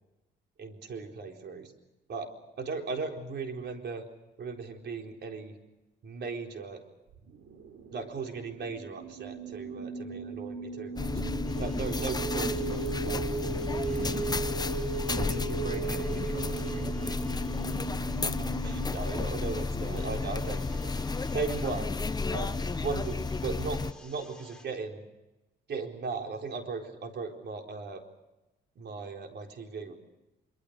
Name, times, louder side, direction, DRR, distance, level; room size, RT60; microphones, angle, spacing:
voice 1, 0.6-1.7 2.1-2.3 2.6-4.0 4.4-5.6 6.0-6.8 7.9-11.2 11.6-13.5 18.4-21.0 21.3-21.9 22.3-25.0 25.7-28.0 28.8-29.9, right 4 dB, 60° right, 3 dB, 4.2 m, -37 dB
sound 1, 7.1-18.9, right 5 dB, 80° right, 3.5 m, -37 dB
sound 2, 11.0-23.9, left 3 dB, 20° left, 0.8 m, -32 dB
sound 3, 11.5-24.7, left 2 dB, 5° left, 4.0 m, -54 dB
voice 2, 13.8-14.4 14.7-17.4 19.7-20.4, right 2 dB, 40° right, 4 dB, 4.6 m, -42 dB
25.5 x 24.0 x 6.7 m, 0.97 s
cardioid pair, 90°, 20 cm